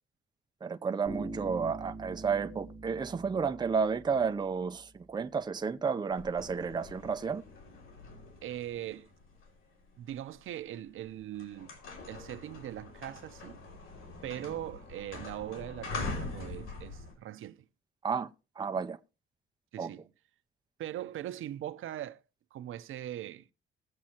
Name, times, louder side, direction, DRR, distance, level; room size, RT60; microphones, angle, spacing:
voice 1, 0.6-7.4 18.0-18.3 18.6-19.0 19.8-19.9, right 5 dB, 20° right, 0.6 m, -32 dB
Bass guitar, 1.1-4.8, right 2 dB, 5° left, 4.1 m, -44 dB
sound 1, 6.1-10.3 10.9-11.1 11.3-17.1, left 3 dB, 80° left, 4.8 m, -43 dB
voice 2, 8.4-9.1 10.0-11.7 12.1-13.6 14.2-17.7 19.7-20.1 20.8-22.2 22.5-23.5, right 12 dB, 75° right, 0.7 m, -41 dB
19.5 x 7.4 x 2.9 m
cardioid pair, 160°, 21 cm